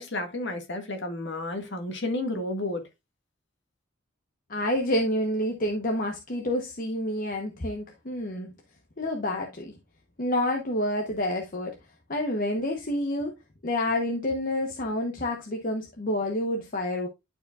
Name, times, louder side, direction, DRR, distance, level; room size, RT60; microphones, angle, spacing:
voice 1, 0.0-2.8, left 2 dB, 60° left, 1.9 m, -31 dB
voice 2, 4.5-8.5 9.0-9.7 10.2-11.7 12.1-13.4 13.6-17.1, left 1 dB, 45° left, 1.0 m, -28 dB
11.5 x 4.7 x 2.4 m
head